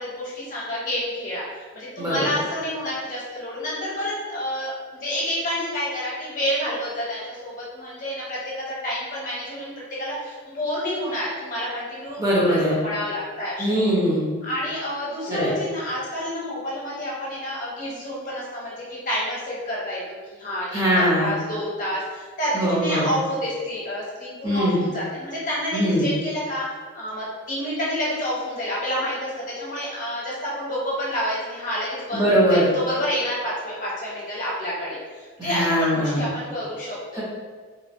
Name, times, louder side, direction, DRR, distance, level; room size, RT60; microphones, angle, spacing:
voice 1, 0.0-4.8 5.0-9.7 10.0-13.7 14.4-20.0 20.3-26.6 26.9-32.2 32.5-37.2, equal, 40° left, -6 dB, 0.7 m, -29 dB
voice 2, 2.0-2.3 12.2-12.7 13.6-14.2 15.3-15.5 20.7-21.3 22.5-23.1 24.4-24.8 25.7-26.1 32.1-32.7 35.4-36.2 37.1-37.2, equal, 15° right, -7 dB, 0.5 m, -21 dB
2.9 x 2.1 x 2.5 m, 1.5 s
head